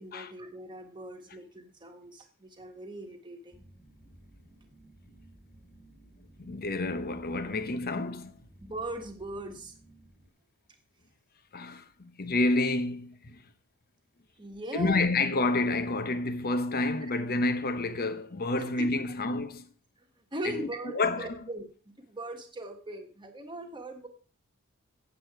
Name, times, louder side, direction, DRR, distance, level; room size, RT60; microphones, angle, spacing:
voice 1, 0.0-3.6 8.6-9.7 14.4-15.1 18.5-19.0 20.3-24.1, right 1 dB, 20° right, 1.5 m, -40 dB
sound 1, 3.5-10.3, right 1 dB, 5° left, 2.0 m, -56 dB
voice 2, 6.4-8.4 11.5-13.4 14.7-19.7 20.4-21.3, left 2 dB, 45° left, 1.0 m, -29 dB
8.6 x 8.1 x 4.7 m
head